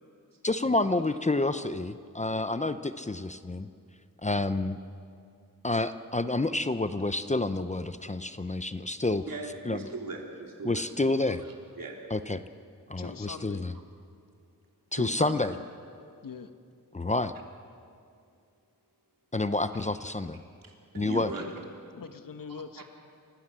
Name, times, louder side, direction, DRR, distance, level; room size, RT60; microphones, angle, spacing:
voice 1, 0.4-3.7 4.2-4.8 5.6-9.2 9.6-9.8 10.6-11.4 12.1-12.4 12.9-13.7 14.9-15.5 16.9-17.3 19.3-20.4 20.9-21.3, left 2 dB, 20° left, 11 dB, 0.7 m, -29 dB
voice 2, 9.3-10.8 11.4-11.5 11.8-12.0 14.9-15.4 19.7-19.9 20.6-21.5, right 3 dB, 75° right, 1 dB, 3.4 m, -39 dB
voice 3, 13.0-13.7 16.2-16.5 21.4-21.5 21.9-22.8, left 6 dB, 70° left, 9 dB, 1.3 m, -42 dB
28.0 x 15.5 x 7.6 m, 2.3 s
wide cardioid pair, 105°, 34 cm